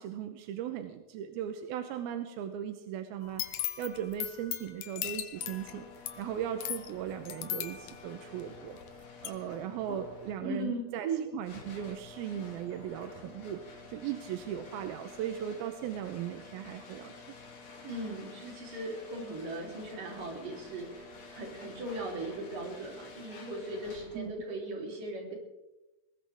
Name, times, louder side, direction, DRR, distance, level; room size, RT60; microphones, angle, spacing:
voice 1, 0.0-5.9 6.2-8.8 9.2-11.1 11.3-17.1 24.1-24.3, right 10 dB, 85° right, 7 dB, 2.7 m, -38 dB
sound 1, 3.2-8.9 9.2-9.3, left 12 dB, 75° left, 2.7 m, -38 dB
sound 2, 5.3-24.4, left 4 dB, 50° left, 3.6 m, -50 dB
voice 2, 10.4-11.2 17.8-25.3, right 2 dB, 65° right, -1 dB, 5.2 m, -38 dB
20.5 x 19.5 x 3.6 m, 0.99 s
omnidirectional pair, 4.3 m